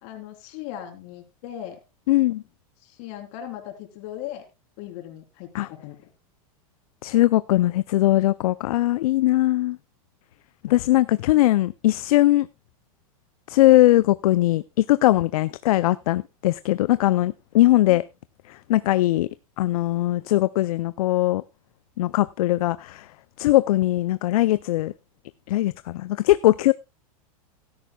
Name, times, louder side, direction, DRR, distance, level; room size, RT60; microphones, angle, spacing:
voice 1, 0.0-1.8 2.8-4.4 4.8-6.0, left 11 dB, 55° left, 4 dB, 3.5 m, -38 dB
voice 2, 2.1-2.4 5.5-5.7 7.0-9.8 10.6-12.5 13.5-18.0 18.5-19.3 19.6-21.4 22.0-23.1 23.4-24.9 25.5-26.7, left 16 dB, 75° left, 16 dB, 0.5 m, -20 dB
15.0 x 13.0 x 2.3 m, 0.25 s
hypercardioid pair, 120°, 19 cm